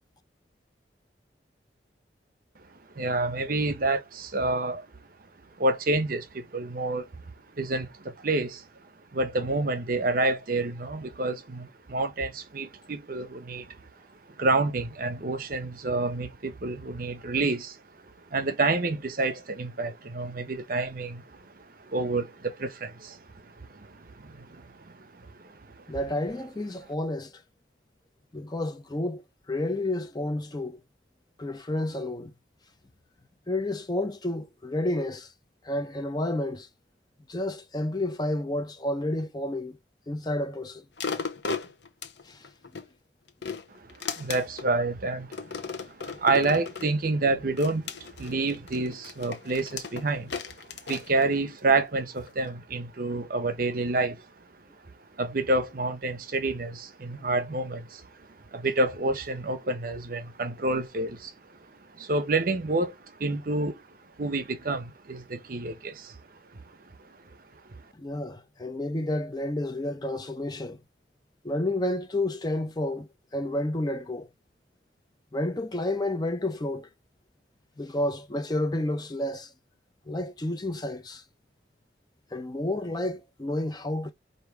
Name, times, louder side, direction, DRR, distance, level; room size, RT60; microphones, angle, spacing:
voice 1, 2.7-4.9 5.6-7.1 7.6-13.8 14.3-25.9 43.7-50.4 50.7-54.5 55.2-66.2 66.5-66.6 67.5-67.8, right 2 dB, 50° right, 0.7 m, -29 dB
voice 2, 25.9-27.4 28.3-30.8 31.4-32.3 33.5-35.3 35.6-36.7 37.3-39.8 40.1-40.8 42.2-42.5 67.9-70.8 71.4-74.3 75.3-76.9 77.8-79.5 80.1-81.2 82.3-84.1, left 1 dB, 20° left, 0.5 m, -30 dB
sound 1, 41.0-42.9 43.3-44.7 45.3-46.9 47.6-51.8 52.3-52.4, left 5 dB, 70° left, 0.7 m, -36 dB
4.8 x 2.6 x 3.3 m
head